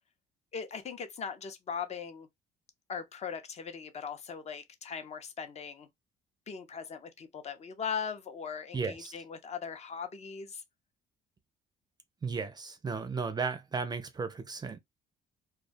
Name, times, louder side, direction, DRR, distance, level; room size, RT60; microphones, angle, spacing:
voice 1, 0.5-2.3 2.9-5.9 6.5-10.6, left 6 dB, 40° left, 0.6 m, -39 dB
voice 2, 8.7-9.1 12.2-14.8, right 5 dB, 25° right, 0.4 m, -34 dB
2.2 x 2.2 x 2.5 m
cardioid pair, 110°, 17 cm